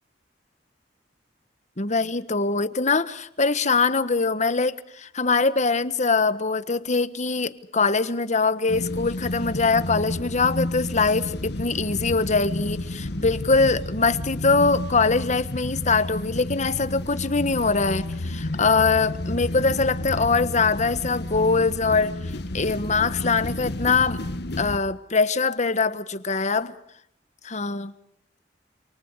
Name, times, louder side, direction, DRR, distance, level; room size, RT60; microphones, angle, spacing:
voice 1, 1.8-22.1 22.5-24.2 24.6-26.7 27.4-27.9, left 4 dB, 40° left, 13 dB, 1.5 m, -23 dB
sound 1, 8.7-24.8, left 1 dB, 65° left, 1.4 m, -31 dB
28.5 x 28.0 x 4.9 m, 0.68 s
head